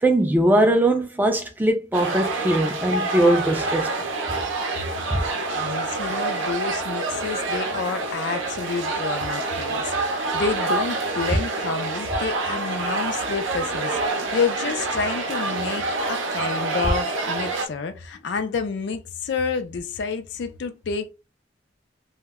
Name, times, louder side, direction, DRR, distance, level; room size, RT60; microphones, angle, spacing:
voice 1, 0.0-4.1 5.1-5.2, right 1 dB, 10° right, 0.3 m, -20 dB
sound 1, 1.9-17.7, right 3 dB, 75° right, 0.5 m, -27 dB
voice 2, 5.5-21.1, left 5 dB, 60° left, 0.4 m, -29 dB
2.1 x 2.0 x 3.4 m
head